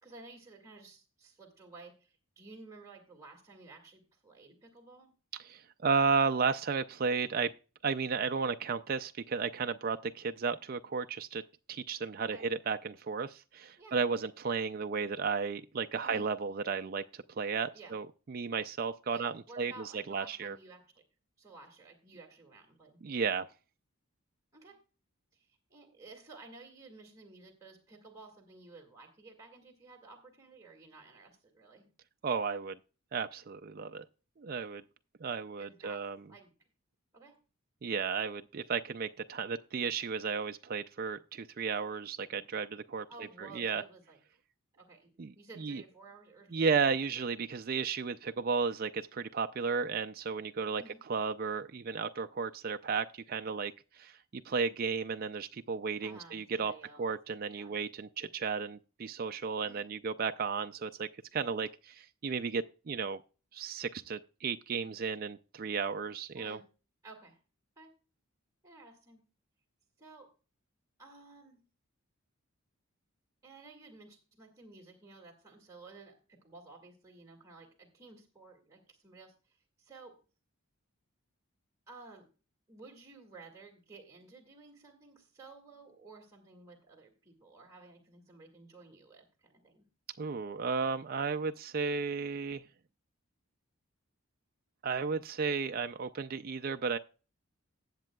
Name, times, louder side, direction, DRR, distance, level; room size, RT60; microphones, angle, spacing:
voice 1, 0.0-5.1 12.3-12.5 13.8-14.0 16.0-16.3 17.7-17.9 19.1-20.8 21.4-23.0 24.5-24.8 25.3-31.9 35.5-36.5 37.1-37.4 43.1-44.2 44.8-45.1 45.4-47.0 50.8-51.0 56.0-57.1 57.5-57.7 59.6-59.8 66.4-66.6 67.0-67.4 67.8-67.9 68.6-69.2 70.0-70.3 71.0-71.6 73.4-80.1 81.9-82.3 82.7-89.9, right 3 dB, 15° right, 2.0 m, -54 dB
voice 2, 5.4-7.5 7.8-11.4 11.7-20.6 23.0-23.5 32.2-32.8 33.1-34.0 34.4-34.8 35.2-36.2 37.8-43.1 43.4-43.8 45.2-45.3 45.6-45.8 46.5-56.7 57.0-63.2 63.5-66.6 90.2-92.6 94.8-97.0, right 5 dB, 45° right, 0.4 m, -34 dB
18.0 x 7.4 x 2.3 m
head